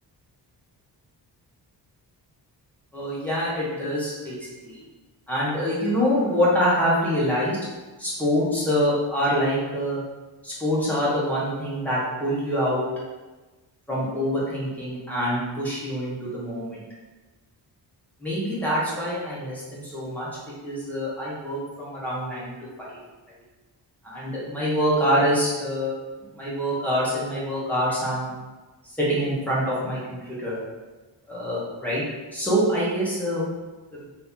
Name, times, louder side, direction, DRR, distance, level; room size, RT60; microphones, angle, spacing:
voice 1, 2.9-4.8 5.3-7.6 8.0-10.0 10.4-12.8 13.9-16.8 18.2-20.3 20.6-22.5 24.0-25.9 26.3-28.3 29.0-30.0 30.4-30.6 31.3-32.0 32.3-33.5 33.9-34.0, equal, 5° left, -9 dB, 0.9 m, -25 dB
2.8 x 2.7 x 3.6 m, 1.2 s
wide cardioid pair, 175°, 42 cm